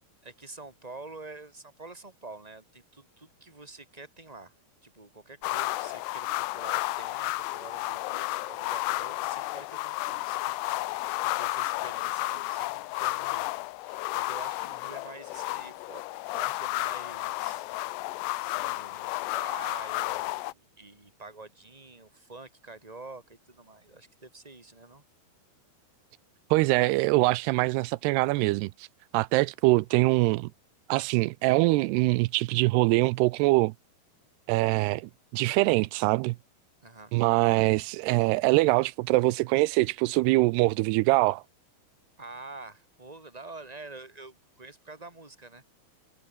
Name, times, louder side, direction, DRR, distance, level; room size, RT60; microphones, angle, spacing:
voice 1, 0.2-4.5 4.8-13.5 13.8-17.7 18.4-25.0 36.8-37.1 42.2-45.6, right 3 dB, 10° right, 3.9 m, -47 dB
sound 1, 5.4-20.5, left 19 dB, 85° left, 2.9 m, -32 dB
voice 2, 26.5-28.9 29.1-30.5 30.9-33.7 34.5-36.4 37.1-41.4, right 21 dB, 85° right, 2.6 m, -23 dB
omnidirectional pair, 4.7 m